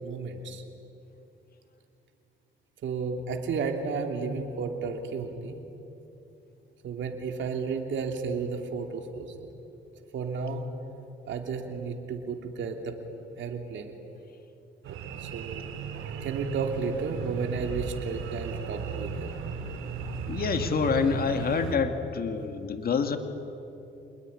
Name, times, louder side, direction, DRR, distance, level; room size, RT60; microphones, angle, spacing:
voice 1, 0.0-0.6 2.8-5.6 6.8-9.3 10.1-10.6 11.3-13.0 13.4-13.9 14.9-15.6 16.2-19.3, right 5 dB, 70° right, 4 dB, 3.0 m, -32 dB
sound 1, 14.8-21.8, right 6 dB, 85° right, 2.2 m, -36 dB
voice 2, 20.3-23.2, left 6 dB, 50° left, 7 dB, 2.3 m, -27 dB
26.5 x 21.0 x 10.0 m, 2.9 s
cardioid pair, 90°, 20 cm